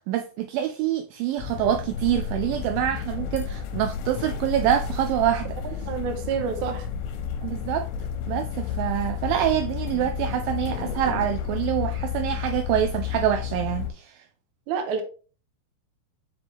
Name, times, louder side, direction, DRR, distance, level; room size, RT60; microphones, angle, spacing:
voice 1, 0.0-5.6 7.4-7.9 8.3-14.2, right 11 dB, 85° right, 2.1 m, -26 dB
sound 1, 1.4-13.9, left 8 dB, 85° left, 2.6 m, -31 dB
voice 2, 5.8-6.9 14.7-15.0, right 6 dB, 70° right, 2.0 m, -28 dB
5.7 x 5.3 x 3.4 m
omnidirectional pair, 4.5 m